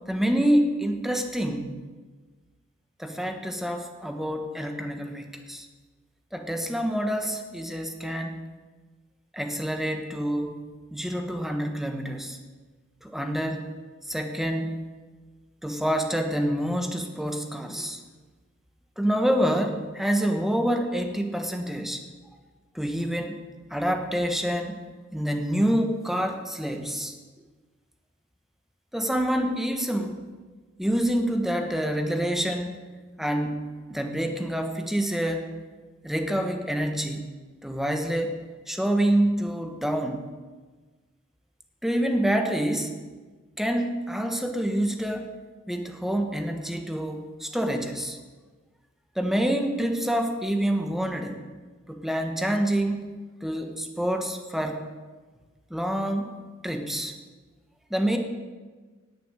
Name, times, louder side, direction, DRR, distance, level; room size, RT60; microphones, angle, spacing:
voice 1, 0.1-1.7 3.0-5.7 6.3-8.4 9.3-10.6 10.9-12.4 13.0-13.7 14.1-14.8 15.6-18.0 19.0-22.0 22.7-23.4 23.7-24.8 25.1-27.1 28.9-30.2 30.8-32.8 33.2-35.5 36.0-37.2 37.6-38.4 38.7-40.3 41.8-42.9 43.6-45.3 45.7-48.2 49.1-51.4 51.9-53.1 53.4-54.9 55.7-56.4 56.6-57.1 57.9-58.2, equal, ahead, 4 dB, 1.3 m, -27 dB
18.5 x 7.0 x 7.5 m, 1.4 s
head